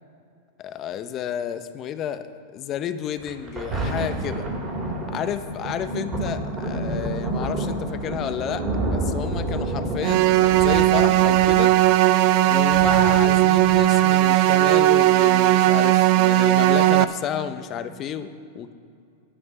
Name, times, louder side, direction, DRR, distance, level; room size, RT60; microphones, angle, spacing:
voice 1, 0.6-4.5 5.1-11.8 12.4-18.7, left 9 dB, 35° left, 11 dB, 0.7 m, -31 dB
Thunder, 3.2-14.2 14.9-15.0, right 1 dB, 30° right, 2.6 m, -29 dB
sound 1, 10.0-17.0, right 15 dB, 55° right, 0.5 m, -17 dB
11.0 x 5.3 x 7.8 m, 2.4 s
hypercardioid pair, 100°, 0 cm